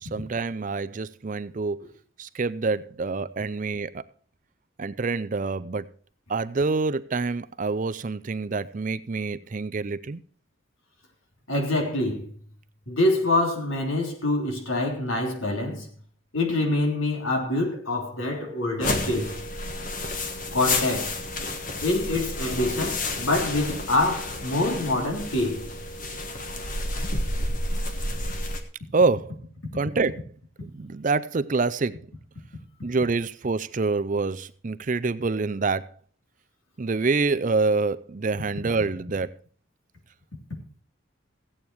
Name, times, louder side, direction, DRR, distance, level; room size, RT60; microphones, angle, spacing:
voice 1, 0.0-1.9 2.2-4.0 4.8-5.9 6.3-10.2 28.9-29.4 29.7-30.2 30.6-32.0 32.8-35.9 36.8-39.3, right 3 dB, 40° right, 0.5 m, -26 dB
voice 2, 11.5-12.2 12.9-15.9 16.3-19.3 20.5-21.2 21.8-25.7, left 2 dB, 80° left, 3.4 m, -25 dB
sound 1, 18.8-28.6, left 2 dB, 40° left, 1.4 m, -30 dB
16.0 x 8.7 x 4.7 m
head